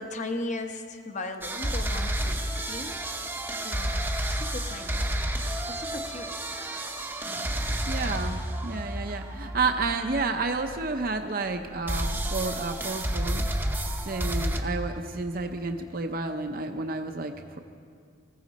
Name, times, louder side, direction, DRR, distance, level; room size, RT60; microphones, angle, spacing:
voice 1, 0.0-3.0 3.6-4.0 4.3-5.1 5.7-6.4, left 2 dB, 40° left, 6 dB, 0.9 m, -37 dB
sound 1, 1.4-11.4 11.9-14.6, right 1 dB, 10° right, 0.7 m, -31 dB
voice 2, 7.8-13.7 14.0-17.6, right 3 dB, 50° right, 6 dB, 0.6 m, -31 dB
20.0 x 15.0 x 4.1 m, 2.2 s
head